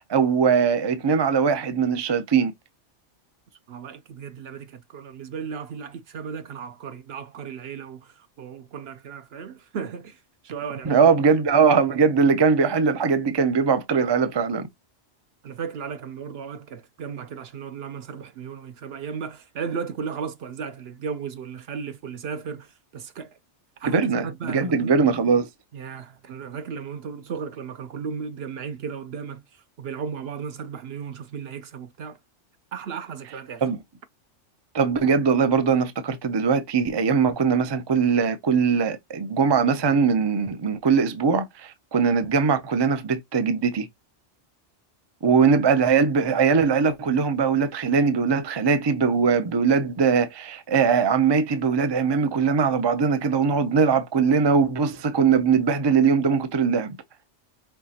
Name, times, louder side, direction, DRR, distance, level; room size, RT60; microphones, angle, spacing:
voice 1, 0.1-2.5 10.8-14.7 23.9-25.5 33.6-33.8 34.7-43.9 45.2-57.0, right 5 dB, 35° right, 0.4 m, -21 dB
voice 2, 3.7-10.2 10.4-11.1 15.4-23.4 23.8-24.9 25.7-29.4 29.8-32.2 32.7-33.6, right 6 dB, 65° right, 0.8 m, -35 dB
5.5 x 2.8 x 2.8 m
omnidirectional pair, 1.2 m